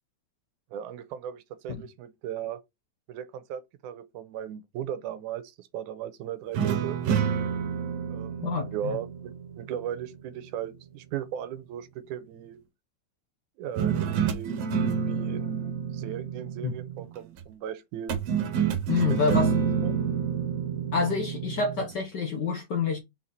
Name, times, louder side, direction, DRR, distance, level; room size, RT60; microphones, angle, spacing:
voice 1, 0.7-2.6 3.1-7.0 8.1-12.6 13.6-18.2 18.9-20.1, right 10 dB, 90° right, 2.2 m, -37 dB
sound 1, 6.5-10.0 13.8-17.2 18.1-21.9, right 7 dB, 65° right, 1.9 m, -28 dB
voice 2, 8.4-9.0 16.6-16.7 18.9-19.5 20.9-23.0, left 5 dB, 75° left, 0.9 m, -27 dB
5.4 x 4.3 x 4.0 m
omnidirectional pair, 3.5 m